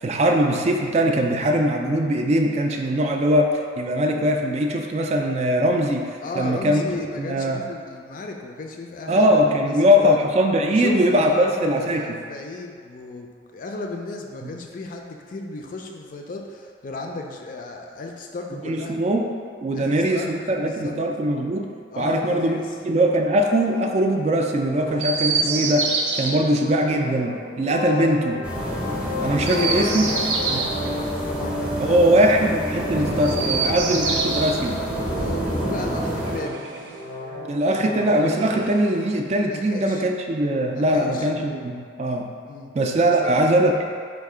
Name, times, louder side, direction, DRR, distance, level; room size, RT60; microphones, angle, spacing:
voice 1, 0.0-6.9 7.2-7.6 9.1-12.0 14.4-14.5 18.6-19.3 19.6-22.6 22.8-25.9 26.2-28.4 29.2-30.1 30.5-30.6 31.8-34.8 37.5-42.3 42.7-43.9, equal, 35° right, 2 dB, 0.3 m, -21 dB
voice 2, 6.2-9.7 10.0-10.2 10.6-19.0 19.7-21.0 21.9-22.7 27.9-28.2 29.4-32.3 33.0-34.3 35.2-36.6 39.4-40.0 40.7-41.3 42.5-42.7 43.2-43.4, left 2 dB, 45° left, 2 dB, 0.4 m, -34 dB
sound 1, 24.6-38.6, left 1 dB, 90° left, 0.7 m, -33 dB
Chirp tweet, 25.0-26.3 29.3-30.7 33.1-34.6 36.0-37.1 38.2-39.1, right 4 dB, 85° right, 0.6 m, -27 dB
sound 2, 28.4-36.4, equal, 5° right, 0.7 m, -29 dB
4.5 x 2.4 x 4.7 m, 2.1 s
head